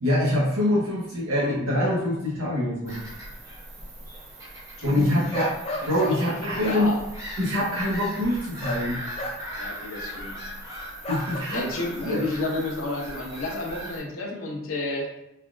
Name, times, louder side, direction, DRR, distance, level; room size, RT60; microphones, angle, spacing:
voice 1, 0.0-3.0 4.8-5.5 5.9-6.9 7.4-9.0 11.1-11.7 12.0-12.2, left 1 dB, 80° right, -7 dB, 0.8 m, -24 dB
Bird vocalization bird call bird song / Gull seagull, 2.9-14.0, right 1 dB, 15° right, 0.6 m, -39 dB
voice 2, 4.8-5.5 5.8-7.0 9.6-10.4 11.5-15.1, left 2 dB, 75° left, -1 dB, 0.7 m, -31 dB
sound 1, 4.8-4.9 5.3-6.2 6.6-6.8 8.6-8.8 9.2-9.5 11.0-11.4, left 1 dB, 30° left, 0.4 m, -32 dB
3.3 x 2.3 x 2.4 m, 0.87 s
head